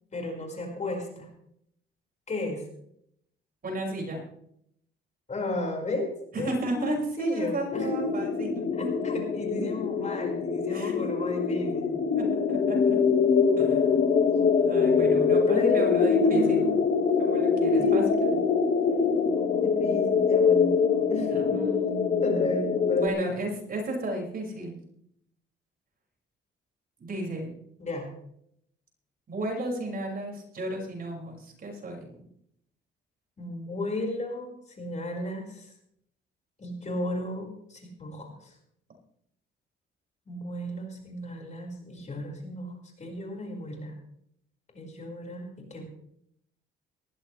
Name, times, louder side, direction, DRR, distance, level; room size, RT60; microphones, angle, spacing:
voice 1, 0.1-1.3 2.3-2.6 5.3-6.1 6.4-7.9 8.8-12.1 15.5-16.8 17.7-18.1 19.6-20.7 21.1-21.3 22.2-23.4 27.8-28.1 33.4-35.7 36.6-38.5 40.3-43.9 44.7-45.9, left 2 dB, 35° left, 1 dB, 5.5 m, -33 dB
voice 2, 3.6-4.2 6.3-8.9 9.6-9.7 10.7-10.9 12.1-13.0 13.6-13.9 14.5-16.8 17.2-18.4 21.3-22.5 22.9-24.8 27.0-27.5 29.3-32.1, right 1 dB, 45° right, 0 dB, 6.2 m, -34 dB
sound 1, 7.7-23.1, left 5 dB, 50° left, 1.7 m, -24 dB
19.0 x 15.0 x 3.4 m, 0.72 s
cardioid pair, 90°, 20 cm